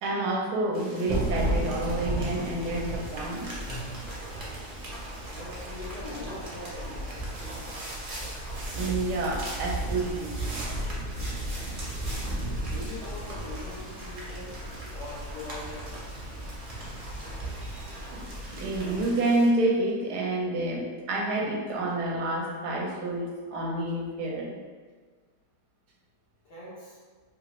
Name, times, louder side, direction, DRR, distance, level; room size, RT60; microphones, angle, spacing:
voice 1, 0.0-3.6 8.7-10.3 17.6-24.6, right 2 dB, 80° right, -1 dB, 1.1 m, -29 dB
sound 1, 0.7-19.5, right 1 dB, 55° right, 1.1 m, -43 dB
Thunderstorm / Rain, 1.1-19.1, right 1 dB, 35° right, 0.7 m, -35 dB
voice 2, 5.3-7.3 12.6-14.6 14.9-16.1 26.4-27.0, left 2 dB, 60° left, -6 dB, 0.9 m, -42 dB
3.0 x 2.4 x 2.9 m, 1.5 s
omnidirectional pair, 1.7 m